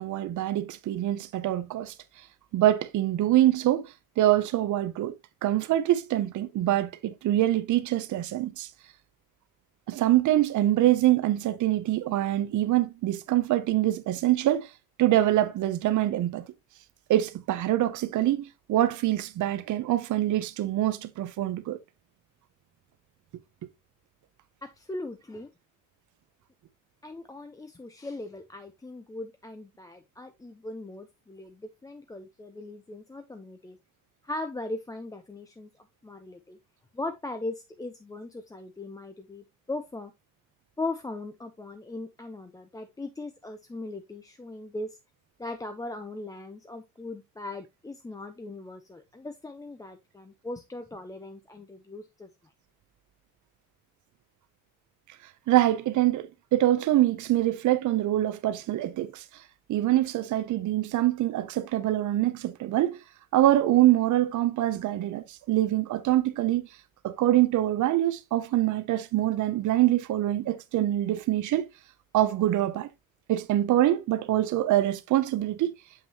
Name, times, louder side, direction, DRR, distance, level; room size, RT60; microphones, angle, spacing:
voice 1, 0.0-1.9 2.5-5.1 5.4-8.7 9.9-14.7 15.0-16.4 17.1-21.8 55.5-59.2 59.7-63.0 63.3-66.7 67.0-71.7 72.1-72.9 73.3-75.7, right 14 dB, 65° right, 0.7 m, -24 dB
voice 2, 24.6-25.5 27.0-33.8 34.2-35.7 36.0-36.6 36.9-40.1 40.8-45.0 45.4-52.3, left 2 dB, 10° left, 0.4 m, -39 dB
7.3 x 5.6 x 2.8 m
cardioid pair, 160°, 32 cm